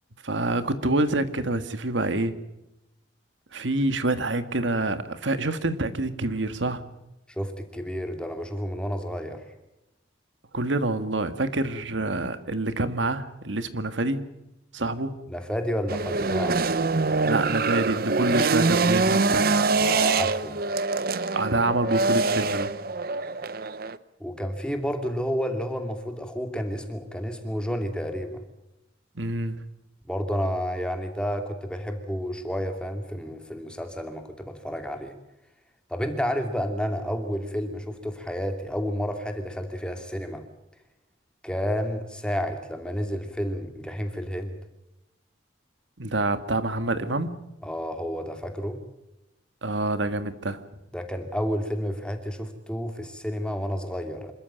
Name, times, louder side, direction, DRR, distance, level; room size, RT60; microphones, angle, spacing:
voice 1, 0.2-2.3 3.5-6.8 10.5-14.2 14.7-15.1 17.2-19.4 21.3-22.7 29.2-29.6 46.0-47.4 49.6-50.6, right 2 dB, 80° right, 10 dB, 1.8 m, -26 dB
voice 2, 7.3-9.4 15.3-16.6 19.8-20.6 24.2-28.4 30.1-35.1 35.9-40.4 41.4-44.6 47.6-48.8 50.9-54.3, equal, 5° left, 5 dB, 2.6 m, -30 dB
sound 1, 15.9-24.0, right 3 dB, 50° right, 0.8 m, -24 dB
27.0 x 13.5 x 9.0 m, 0.93 s
head